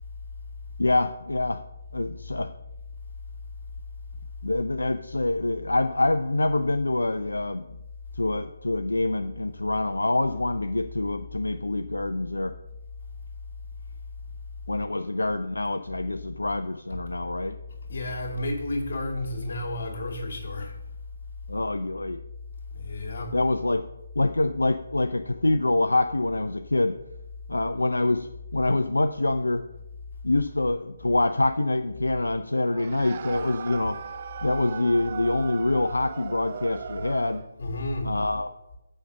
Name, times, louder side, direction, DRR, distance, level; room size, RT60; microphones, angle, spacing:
voice 1, 0.8-1.6 1.9-2.5 4.4-7.7 8.1-12.5 14.7-17.6 21.5-22.2 23.3-23.8 24.2-27.0 27.5-29.6 30.2-34.0 34.4-37.4 38.0-38.5, left 2 dB, 80° left, 0.4 m, -25 dB
voice 2, 17.9-20.7 22.7-23.4 37.6-38.1, left 1 dB, 55° left, 2.4 m, -31 dB
sound 1, 32.7-37.5, right 7 dB, 40° right, 0.3 m, -38 dB
7.2 x 5.7 x 6.8 m
figure-of-eight pair, 150°, 0 cm